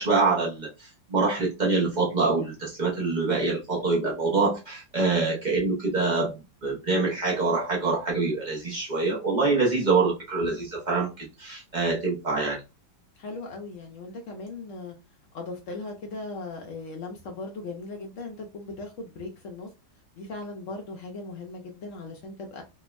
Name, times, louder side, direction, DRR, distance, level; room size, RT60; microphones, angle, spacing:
voice 1, 0.0-6.3 6.6-12.6, right 3 dB, 75° right, 0.4 m, -25 dB
voice 2, 13.2-14.9 15.3-19.7 20.2-22.6, left 3 dB, 65° left, 0.7 m, -38 dB
3.4 x 2.1 x 2.2 m
omnidirectional pair, 1.9 m